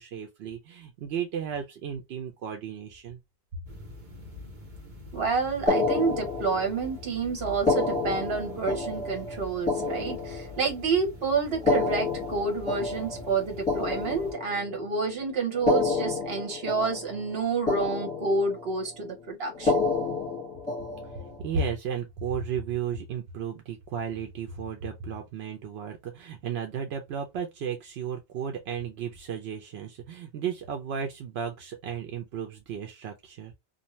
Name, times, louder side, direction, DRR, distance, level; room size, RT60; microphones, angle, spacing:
voice 1, 0.0-3.2 21.0-33.5, right 6 dB, 85° right, 0.8 m, -34 dB
sound 1, 3.7-14.3, left 2 dB, 50° right, 0.9 m, -45 dB
voice 2, 5.1-19.9, right 4 dB, 70° right, 1.2 m, -29 dB
sound 2, 5.7-6.9 7.5-10.9 11.5-14.8 15.5-17.4 17.7-18.7 19.5-21.4, left 3 dB, 5° left, 1.4 m, -29 dB
2.6 x 2.2 x 3.0 m
omnidirectional pair, 1.0 m